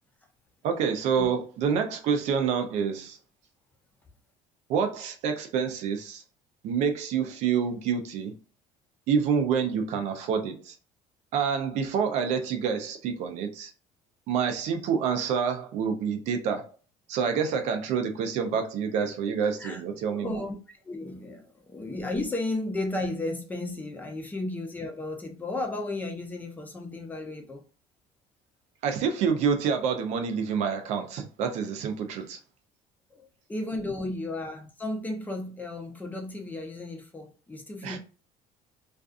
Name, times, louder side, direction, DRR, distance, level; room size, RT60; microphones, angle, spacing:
voice 1, 0.6-3.2 4.7-6.2 6.6-8.3 9.1-10.7 11.3-13.7 14.3-16.7 17.1-20.4 28.8-32.4 37.8-38.0, right 6 dB, 65° right, 0.5 m, -27 dB
voice 2, 20.1-20.6 20.8-27.6 33.1-38.0, left 2 dB, 15° left, 0.6 m, -34 dB
2.5 x 2.3 x 2.4 m
cardioid pair, 125°, 13 cm